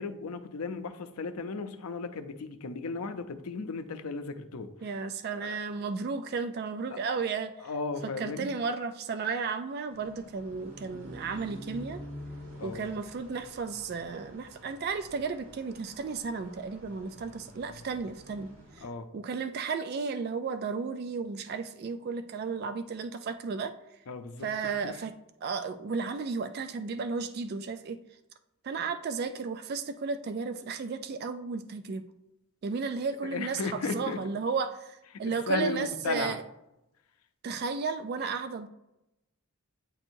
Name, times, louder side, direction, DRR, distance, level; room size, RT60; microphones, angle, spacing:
voice 1, 0.0-4.7 5.3-5.6 6.9-7.0 7.6-8.5 12.6-12.8 18.8-19.1 24.1-25.0 33.2-34.2 35.1-36.4, left 4 dB, 90° left, 9 dB, 0.5 m, -35 dB
voice 2, 4.8-7.5 8.2-12.0 12.6-18.5 18.8-18.9 19.1-23.7 24.4-25.1 25.4-28.0 28.6-32.0 32.6-36.4 37.4-38.7, right 5 dB, 45° right, 9 dB, 0.3 m, -33 dB
sound 1, 9.9-18.8, left 1 dB, 80° right, 1.9 m, -48 dB
8.9 x 4.4 x 2.6 m, 0.89 s
head